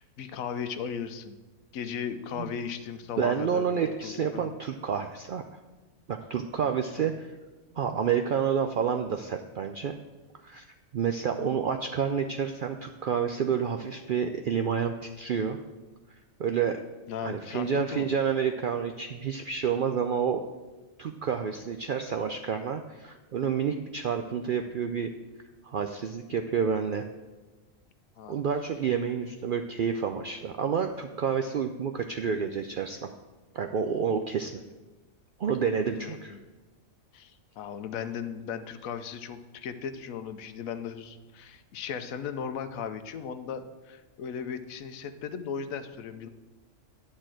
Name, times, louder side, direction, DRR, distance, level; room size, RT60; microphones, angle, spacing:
voice 1, 0.0-1.4 1.7-4.4 6.9-7.1 17.1-18.1 28.2-28.4 36.0-36.4 37.1-46.3, left 7 dB, 85° left, 10 dB, 1.1 m, -37 dB
voice 2, 3.2-5.4 6.1-7.3 7.8-9.9 10.4-10.6 10.9-15.6 16.4-16.8 17.2-20.5 21.0-25.1 25.6-27.1 28.3-33.1 33.5-34.6 35.4-36.4, right 7 dB, 75° right, 6 dB, 0.4 m, -29 dB
10.5 x 4.3 x 7.5 m, 1.2 s
omnidirectional pair, 1.4 m